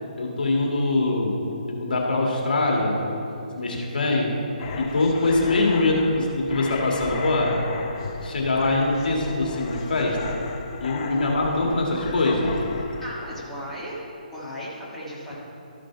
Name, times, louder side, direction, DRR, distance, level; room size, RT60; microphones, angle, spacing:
voice 1, 0.2-1.4 1.7-3.0 3.6-4.3 4.8-7.6 8.2-10.4 10.8-12.6, left 2 dB, 70° left, -1 dB, 1.8 m, -23 dB
voice 2, 3.3-3.8 11.1-11.2 13.0-14.0 14.3-15.3, equal, 5° left, -10 dB, 1.7 m, -37 dB
sound 1, 4.6-13.0, left 4 dB, 35° left, 0.7 m, -36 dB
13.0 x 5.1 x 4.5 m, 2.8 s
hypercardioid pair, 150°, 5 cm